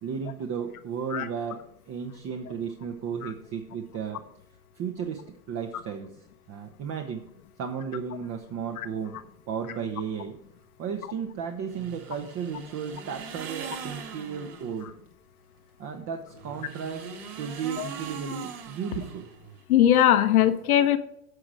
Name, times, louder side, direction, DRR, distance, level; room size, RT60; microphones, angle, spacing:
voice 1, 0.0-4.2 4.7-5.2 5.5-6.1 6.5-7.2 7.6-9.2 9.5-10.4 10.8-14.9 15.8-17.1 17.4-19.3, right 7 dB, 40° right, 4 dB, 1.2 m, -34 dB
sound 1, 11.7-14.8 16.3-19.6, right 6 dB, 60° right, 2.1 m, -41 dB
voice 2, 19.7-21.0, left 11 dB, 75° left, 9 dB, 1.1 m, -20 dB
9.8 x 6.2 x 4.8 m, 0.77 s
hypercardioid pair, 90°, 43 cm